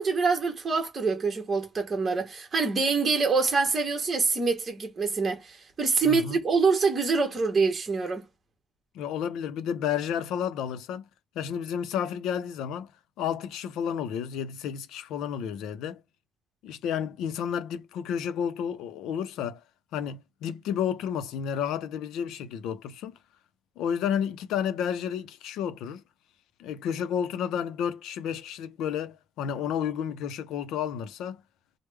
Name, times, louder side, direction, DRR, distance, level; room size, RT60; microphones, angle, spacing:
voice 1, 0.0-8.2, right 4 dB, 25° right, 1.1 m, -25 dB
voice 2, 6.0-6.4 8.9-11.1 11.4-12.9 13.2-16.0 16.6-19.6 19.9-23.2 23.8-26.0 26.6-31.4, left 8 dB, 85° left, 0.5 m, -31 dB
3.3 x 2.1 x 3.3 m
cardioid pair, 150°, 0 cm